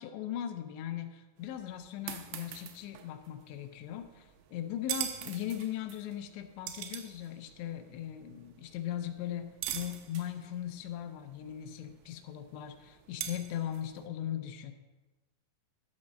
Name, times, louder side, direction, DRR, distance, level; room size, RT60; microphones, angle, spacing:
voice 1, 0.0-14.7, left 11 dB, 85° left, 7 dB, 2.9 m, -39 dB
rice dropping, 1.4-14.1, right 11 dB, 85° right, 2.8 m, -44 dB
12.0 x 4.1 x 6.3 m, 1.2 s
omnidirectional pair, 5.0 m